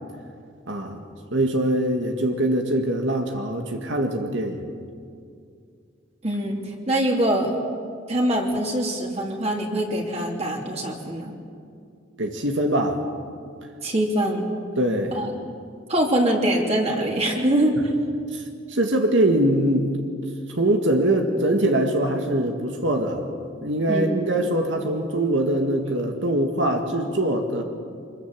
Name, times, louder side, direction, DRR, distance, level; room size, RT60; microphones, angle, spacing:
voice 1, 0.7-1.0 1.3-4.7 12.2-13.0 14.8-15.2 18.3-18.4 18.7-19.9 20.5-23.3 23.6-27.6, right 1 dB, 85° right, 3 dB, 2.0 m, -23 dB
voice 2, 6.2-7.5 8.1-11.3 13.8-14.5 15.1-15.3 15.9-17.9 23.9-24.1, right 1 dB, 35° right, 0 dB, 3.0 m, -23 dB
25.5 x 22.0 x 7.5 m, 2.3 s
head